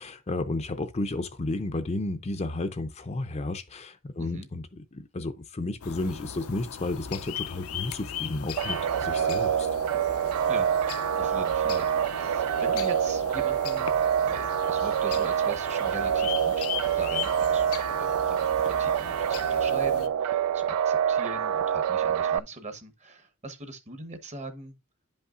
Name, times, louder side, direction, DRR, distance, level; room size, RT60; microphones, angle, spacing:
voice 1, 0.0-4.6 4.9-9.7, left 2 dB, 30° left, 0.5 m, -32 dB
voice 2, 4.2-4.5 10.5-10.7 11.2-13.9 14.2-16.7 17.0-17.7 18.0-24.7, right 2 dB, 30° right, 1.0 m, -41 dB
sound 1, 5.8-20.1, left 8 dB, 75° left, 0.5 m, -38 dB
sound 2, 8.6-22.4, right 9 dB, 85° right, 0.3 m, -26 dB
10.5 x 5.5 x 2.5 m
head